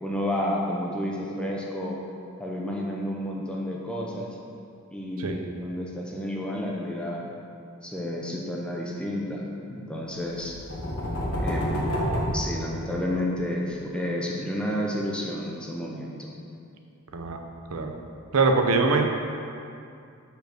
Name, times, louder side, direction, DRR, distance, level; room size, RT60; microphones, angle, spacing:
voice 1, 0.0-2.0 2.4-4.3 4.9-7.3 7.8-10.6 11.4-12.0 12.3-16.3, left 1 dB, 5° left, -3 dB, 0.6 m, -31 dB
sound 1, 10.3-13.3, equal, 70° left, 1.3 m, -29 dB
voice 2, 18.3-19.0, right 3 dB, 85° right, 4 dB, 0.6 m, -23 dB
5.3 x 4.6 x 6.0 m, 2.5 s
head